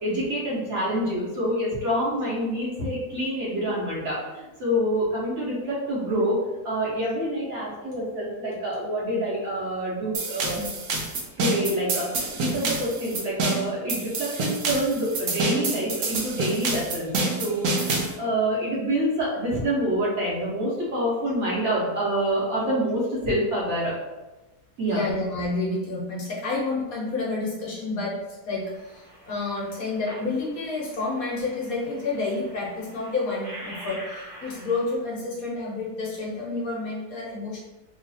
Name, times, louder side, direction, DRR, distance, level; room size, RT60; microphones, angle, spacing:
voice 1, 0.0-6.4 6.6-10.6 11.4-23.9 24.8-25.0, right 1 dB, 50° right, -6 dB, 1.2 m, -27 dB
sound 1, 10.1-18.1, right 3 dB, 70° right, 1.1 m, -27 dB
voice 2, 24.9-28.2 28.5-37.6, left 3 dB, 65° left, -4 dB, 1.2 m, -29 dB
sound 2, 28.6-35.0, equal, 35° right, 0.6 m, -45 dB
3.1 x 2.4 x 4.0 m, 1.1 s
omnidirectional pair, 1.7 m